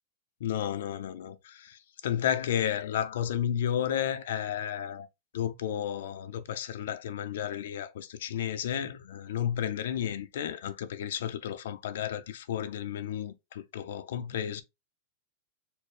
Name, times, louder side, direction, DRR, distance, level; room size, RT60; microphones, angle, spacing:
voice 1, 0.4-5.1 5.3-14.6, left 9 dB, 70° left, 0.5 m, -32 dB
4.3 x 2.1 x 3.2 m
supercardioid pair, 175°, 0 cm